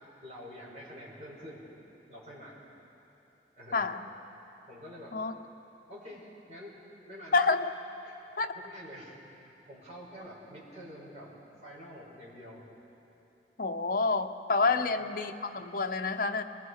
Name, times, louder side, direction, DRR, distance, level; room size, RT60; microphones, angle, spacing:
voice 1, 0.2-1.7 2.1-2.6 3.6-4.0 4.7-5.2 5.9-6.8 7.1-7.5 8.0-11.3 11.6-12.7 14.7-14.8, equal, 40° right, -6 dB, 5.6 m, -47 dB
voice 2, 7.3-7.7 8.4-8.5 13.6-16.4, left 3 dB, 50° left, 6 dB, 0.9 m, -28 dB
28.5 x 20.5 x 4.8 m, 3.0 s
head